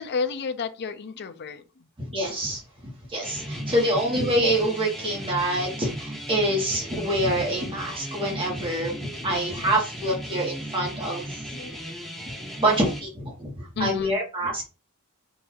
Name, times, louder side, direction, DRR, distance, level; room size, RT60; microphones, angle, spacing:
voice 1, 0.0-1.9 3.6-4.0 8.3-8.5 9.2-9.8 10.1-10.4 11.5-11.8 13.8-14.5, left 5 dB, 50° left, 0.5 m, -34 dB
voice 2, 2.0-2.6 3.1-11.4 12.6-14.7, right 1 dB, 25° right, 1.3 m, -26 dB
sound 1, 3.2-13.0, equal, ahead, 1.3 m, -37 dB
3.8 x 2.7 x 4.5 m
head